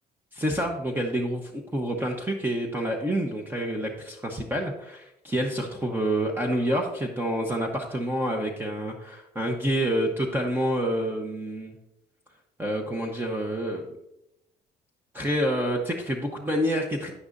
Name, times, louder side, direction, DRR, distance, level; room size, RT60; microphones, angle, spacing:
voice 1, 0.3-11.8 12.6-13.8 15.1-17.1, equal, 10° right, 1 dB, 1.1 m, -28 dB
9.7 x 9.3 x 2.7 m, 0.86 s
cardioid pair, 110°, 17 cm